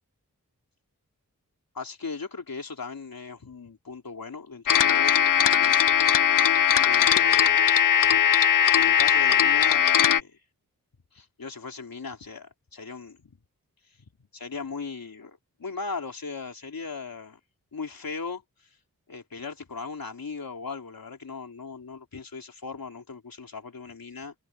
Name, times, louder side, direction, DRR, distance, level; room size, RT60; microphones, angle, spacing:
voice 1, 1.7-5.1 5.4-5.8 6.7-8.2 8.7-10.4 11.1-13.4 14.3-17.4 17.7-18.4 19.1-24.3, left 4 dB, 80° left, 3.3 m, -38 dB
sound 1, 4.7-10.2, left 9 dB, 65° left, 0.5 m, -20 dB
cardioid pair, 40°, 35 cm